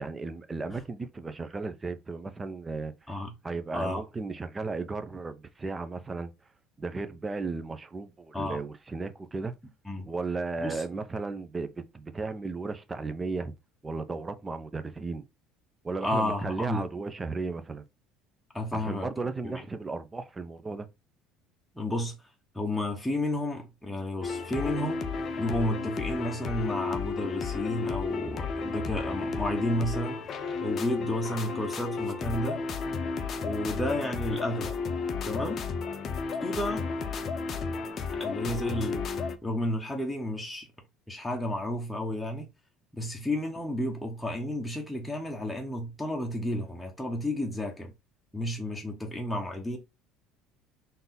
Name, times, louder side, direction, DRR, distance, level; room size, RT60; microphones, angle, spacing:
voice 1, 0.0-2.9 3.4-6.3 6.8-9.5 10.1-13.5 13.8-15.2 15.8-17.8 18.7-20.9 43.0-43.1, right 3 dB, 20° right, 0.6 m, -35 dB
voice 2, 16.0-16.9 18.5-19.1 19.4-19.6 21.7-22.3 22.5-25.0 25.4-30.2 30.6-32.6 33.4-34.7 35.2-35.6 36.4-36.9 38.1-39.0 39.4-40.7 41.1-42.5 42.9-47.9 48.3-49.8, left 1 dB, 5° left, 1.0 m, -32 dB
sound 1, 24.2-39.4, left 4 dB, 45° left, 0.6 m, -33 dB
3.8 x 2.7 x 3.7 m
supercardioid pair, 100°, 0 cm